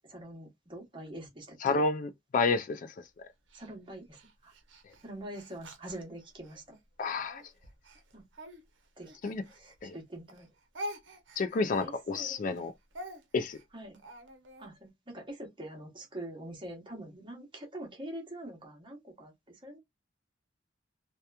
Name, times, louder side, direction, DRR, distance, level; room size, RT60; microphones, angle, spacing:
voice 1, 0.1-1.8 3.5-4.5 5.0-6.8 8.1-8.2 9.0-10.5 11.8-12.6 13.7-14.0 14.6-19.8, right 1 dB, 25° right, 0.9 m, -45 dB
voice 2, 1.6-2.9 7.0-7.4 9.2-9.4 9.8-10.0 11.4-12.7 13.3-13.6, left 4 dB, 45° left, 0.3 m, -30 dB
Speech, 3.5-6.6 7.2-10.0 10.3-14.7, equal, 70° right, 0.7 m, -47 dB
2.8 x 2.2 x 2.2 m
head